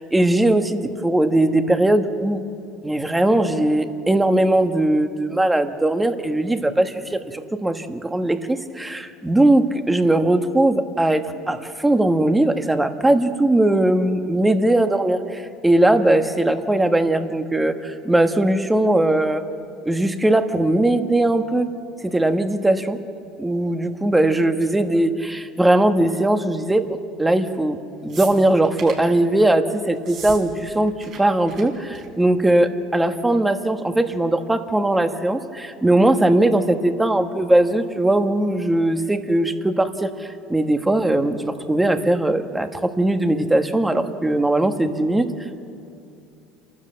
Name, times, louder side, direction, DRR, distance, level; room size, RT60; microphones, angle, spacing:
voice 1, 0.0-2.4 2.8-19.4 19.8-21.7 22.0-23.0 23.4-45.3, right 1 dB, 10° right, 8 dB, 1.4 m, -19 dB
sound 1, 28.1-29.1 30.0-30.4 30.7-31.2 31.5-31.6 31.9-32.2 33.2-33.3, right 6 dB, 50° right, 5.1 m, -37 dB
28.0 x 12.5 x 7.6 m, 2.5 s
supercardioid pair, 90°, 0 cm